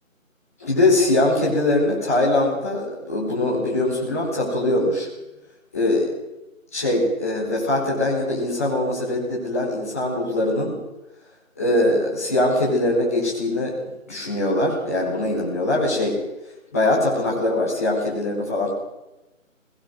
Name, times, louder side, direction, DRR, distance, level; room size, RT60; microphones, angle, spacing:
voice 1, 0.6-5.1 5.7-6.1 6.7-10.7 11.6-13.7 14.1-16.2 16.7-18.7, left 1 dB, 10° left, -9 dB, 4.6 m, -22 dB
24.0 x 20.5 x 6.4 m, 0.97 s
figure-of-eight pair, 180°, 41 cm